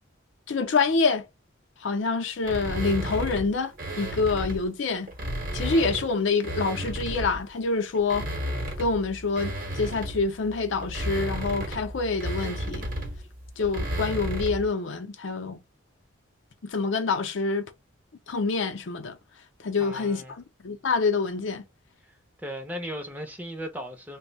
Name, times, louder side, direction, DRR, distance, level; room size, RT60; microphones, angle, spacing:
voice 1, 0.5-1.3 1.8-5.1 5.5-8.3 8.8-12.9 13.6-15.6 16.6-17.7 18.3-19.2 19.6-21.6, left 4 dB, 70° left, 0.5 m, -26 dB
sound 1, 2.4-4.7 5.1-7.5 7.9-14.7, equal, 45° right, 0.9 m, -33 dB
voice 2, 19.8-20.4 22.0-22.1 22.4-24.2, equal, 10° right, 0.6 m, -37 dB
2.6 x 2.1 x 3.8 m
head